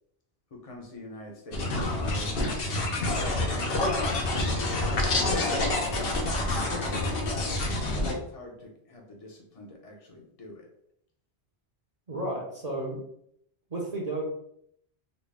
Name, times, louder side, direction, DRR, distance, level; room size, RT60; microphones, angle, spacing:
voice 1, 0.6-2.3 2.9-6.3 6.5-10.7, left 3 dB, 35° left, 0 dB, 0.8 m, -42 dB
sound 1, 1.5-8.1, left 2 dB, 65° left, 0.9 m, -27 dB
voice 2, 12.1-13.0 13.7-14.3, right 1 dB, 40° right, -2 dB, 0.9 m, -32 dB
4.1 x 2.2 x 3.4 m, 0.71 s
omnidirectional pair, 1.1 m